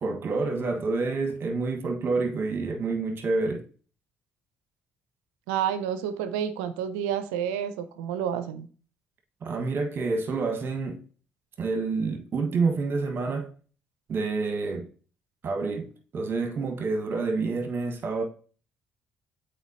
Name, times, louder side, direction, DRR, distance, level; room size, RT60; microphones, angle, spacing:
voice 1, 0.0-3.6 9.4-11.0 11.6-13.5 14.1-14.9 15.4-18.2, right 4 dB, 50° right, 1.3 m, -28 dB
voice 2, 5.5-8.7, right 9 dB, 85° right, 0.5 m, -29 dB
8.0 x 4.4 x 2.7 m
hypercardioid pair, 55°, 5 cm